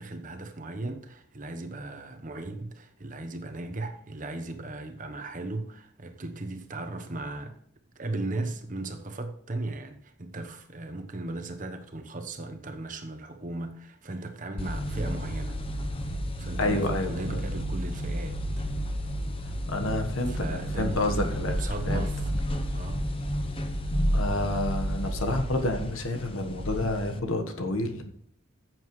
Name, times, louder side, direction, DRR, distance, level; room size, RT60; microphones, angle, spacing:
voice 1, 0.0-7.6 7.9-15.6 16.4-18.4 20.3-22.3 22.7-23.1, right 2 dB, 40° right, 1.0 m, -37 dB
Elevator(Lift) going down, 14.6-27.2, equal, 25° left, 0.8 m, -31 dB
voice 2, 16.6-17.5 19.7-21.6 21.9-22.1 24.1-28.1, left 2 dB, 75° left, 1.3 m, -29 dB
14.5 x 7.8 x 3.2 m
head